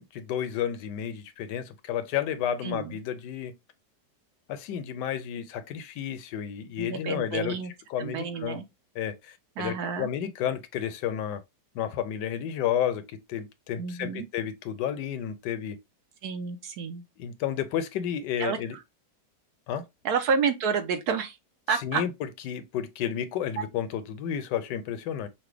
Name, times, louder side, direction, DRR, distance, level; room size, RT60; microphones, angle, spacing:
voice 1, 0.0-3.5 4.5-7.6 7.9-8.6 9.0-11.4 11.7-15.8 17.2-18.8 19.7-19.8 21.8-22.1 22.5-25.3, left 9 dB, 80° left, 1.2 m, -31 dB
voice 2, 2.6-3.0 6.8-7.7 8.0-8.7 9.6-10.1 13.8-14.3 16.2-17.0 18.4-18.8 20.0-21.4 21.7-22.0 23.6-23.7, right 6 dB, 70° right, 1.1 m, -29 dB
5.8 x 2.1 x 3.2 m
omnidirectional pair, 1.9 m